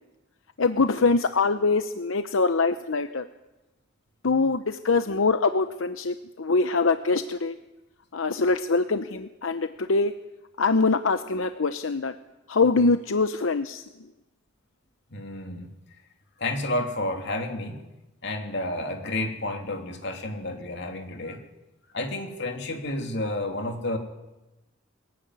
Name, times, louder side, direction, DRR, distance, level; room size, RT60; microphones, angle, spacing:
voice 1, 0.6-3.3 4.2-7.6 8.1-10.1 10.6-12.1 12.5-13.8, left 3 dB, 85° left, 10 dB, 0.8 m, -23 dB
voice 2, 15.1-15.7 16.4-17.8 18.2-21.4 21.9-24.0, left 1 dB, 60° left, 4 dB, 3.0 m, -30 dB
22.0 x 15.5 x 9.8 m, 1.0 s
head